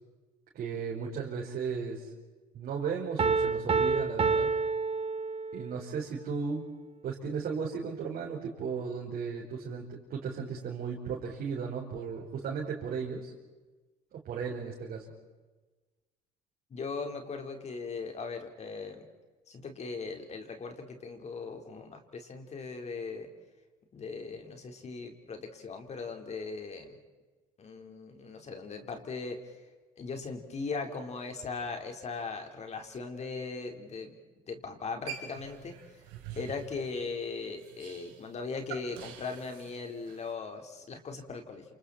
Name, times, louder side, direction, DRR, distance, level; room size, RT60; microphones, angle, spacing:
voice 1, 0.5-2.1 2.5-4.5 5.5-6.7 7.0-13.3 14.1-15.1, right 5 dB, 60° right, -4 dB, 5.1 m, -35 dB
Piano, 3.2-5.8, right 4 dB, 35° right, 1.4 m, -28 dB
voice 2, 16.7-19.1 19.5-23.3 23.9-27.0 27.6-29.6 30.0-34.1 34.4-35.8 36.4-41.6, left 4 dB, 40° left, 4 dB, 4.3 m, -39 dB
sound 1, 35.1-40.3, right 8 dB, 90° right, 3.8 m, -46 dB
28.5 x 28.0 x 4.4 m, 1.2 s
supercardioid pair, 85°, 17 cm